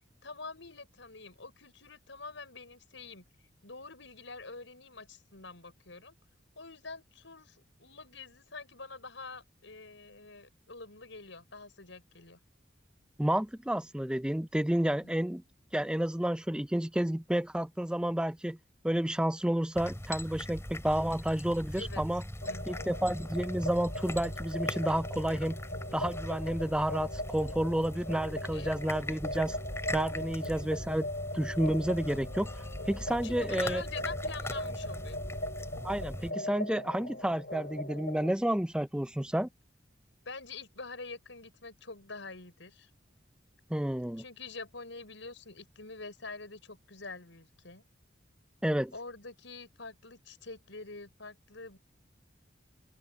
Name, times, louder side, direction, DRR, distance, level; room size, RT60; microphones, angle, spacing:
voice 1, 0.2-3.2 3.6-6.2 6.6-12.4 15.0-15.2 21.8-22.0 22.4-22.8 28.5-28.8 30.2-30.7 33.0-35.2 40.2-42.9 44.2-47.8 48.9-51.8, left 3 dB, 85° left, 6.2 m, -46 dB
voice 2, 13.2-15.4 15.7-18.6 18.8-22.2 22.7-25.6 25.9-29.6 29.9-31.1 31.3-33.8 35.8-39.5 43.7-44.2 48.6-48.9, right 1 dB, 5° right, 0.4 m, -30 dB
sound 1, 19.7-36.3, left 1 dB, 15° left, 4.8 m, -40 dB
sound 2, 22.4-38.3, left 1 dB, 60° left, 1.6 m, -40 dB
open air
head